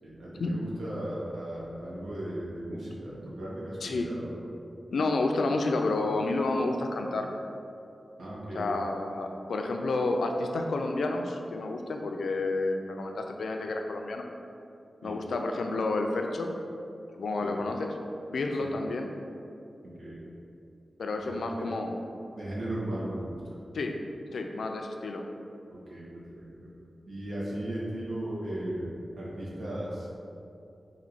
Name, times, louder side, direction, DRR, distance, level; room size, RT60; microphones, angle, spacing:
voice 1, 0.0-4.4 8.2-8.6 15.0-15.1 17.4-17.6 18.6-18.7 19.8-20.2 21.2-21.7 22.3-23.6 25.7-26.1 26.3-26.7 27.1-30.2, right 1 dB, 75° right, -6 dB, 1.1 m, -36 dB
voice 2, 4.9-7.3 8.5-14.2 15.0-16.5 17.2-17.9 18.3-19.1 21.0-22.0 23.7-24.0 24.3-25.2, left 2 dB, 90° left, 3 dB, 0.4 m, -30 dB
4.0 x 2.7 x 4.3 m, 2.7 s
wide cardioid pair, 135°, 0 cm